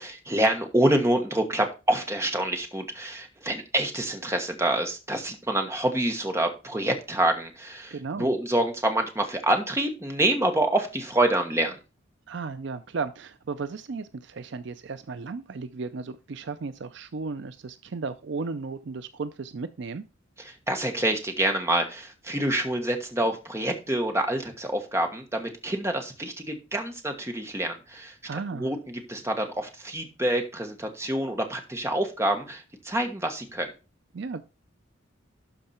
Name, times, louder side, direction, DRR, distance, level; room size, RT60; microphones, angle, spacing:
voice 1, 0.0-11.8 20.4-33.7, right 1 dB, 15° right, 1.3 m, -27 dB
voice 2, 7.9-8.3 12.3-20.0 28.2-28.7 34.1-34.4, right 4 dB, 60° right, 0.4 m, -35 dB
12.0 x 4.7 x 4.3 m
head